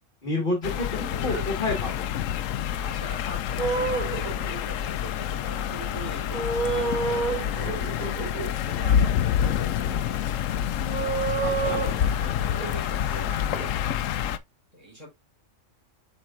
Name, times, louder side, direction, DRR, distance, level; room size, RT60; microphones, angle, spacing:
voice 1, 0.2-2.1 11.4-11.8, left 2 dB, 40° left, 1.8 m, -29 dB
sound 1, 0.6-14.4, left 9 dB, 75° left, 1.0 m, -27 dB
sound 2, 0.6-1.5 3.6-4.8 6.3-8.5 9.7-9.8 10.8-13.7, right 5 dB, 85° right, 3.3 m, -30 dB
voice 2, 2.7-10.4 10.9-14.2 14.7-15.1, right 1 dB, 25° right, 4.2 m, -42 dB
7.5 x 5.5 x 2.5 m
omnidirectional pair, 1.4 m